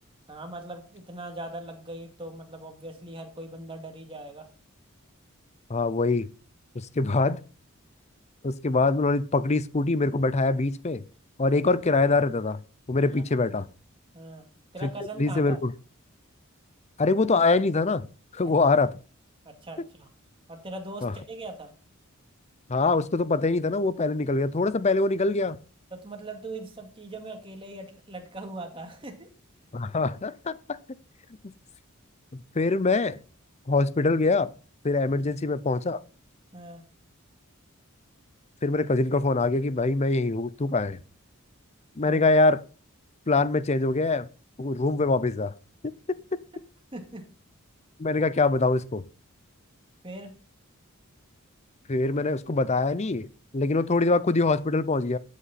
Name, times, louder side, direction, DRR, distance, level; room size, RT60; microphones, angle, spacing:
voice 1, 0.3-4.5 13.1-13.2 14.1-14.4 14.7-15.6 19.4-20.1 20.5-21.7 25.9-29.3 35.2-35.3 36.5-36.8 42.1-42.2 46.9-47.3 50.0-50.4, right 2 dB, 25° right, 2.3 m, -40 dB
voice 2, 5.7-6.3 6.7-7.4 8.4-11.0 11.4-12.6 12.9-13.7 14.8-14.9 15.2-15.7 17.0-18.0 18.3-18.9 21.0-21.1 22.7-25.6 29.7-30.8 32.3-33.2 33.7-34.5 34.8-36.0 38.6-41.0 42.0-42.6 43.3-44.3 44.6-45.5 46.1-46.2 48.0-49.0 51.9-53.3 53.5-55.2, left 3 dB, 30° left, 0.6 m, -24 dB
12.5 x 8.5 x 4.2 m
head